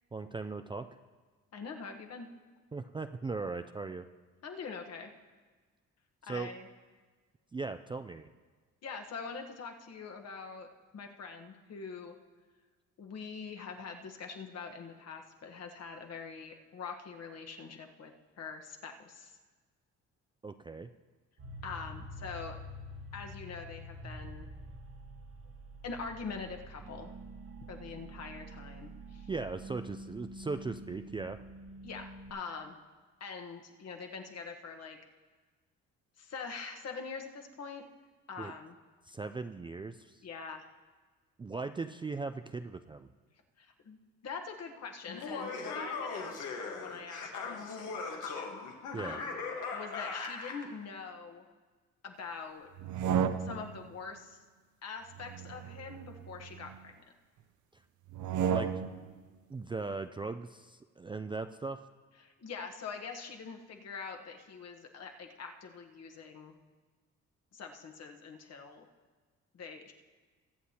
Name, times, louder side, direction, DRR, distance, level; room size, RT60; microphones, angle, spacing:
voice 1, 0.1-0.9 2.7-4.1 6.2-6.5 7.5-8.3 20.4-20.9 29.3-31.4 38.4-38.5 39.1-40.3 41.4-43.1 48.9-49.2 58.5-58.8 59.5-61.8, right 3 dB, 15° right, 8 dB, 0.3 m, -38 dB
voice 2, 1.5-2.3 4.4-5.1 6.2-6.6 8.8-10.7 10.9-12.1 13.0-18.1 18.4-19.4 21.6-22.6 23.1-24.5 25.8-27.1 27.7-29.3 31.8-32.8 33.2-35.0 36.2-37.8 38.3-38.8 40.2-40.7 43.6-44.0 44.2-49.4 49.7-51.4 52.0-52.7 53.4-54.4 54.8-56.9 62.2-66.6 67.5-68.9 69.5-69.9, left 5 dB, 55° left, 3 dB, 1.3 m, -44 dB
sound 1, 21.4-32.3, right 1 dB, 45° right, 1.4 m, -47 dB
Laughter, 45.1-50.7, left 4 dB, 80° left, 1.5 m, -39 dB
sound 2, 52.8-53.8 55.1-56.8 58.1-59.1, right 7 dB, 80° right, 0.6 m, -33 dB
22.0 x 7.8 x 2.9 m, 1.4 s
cardioid pair, 90°, 30 cm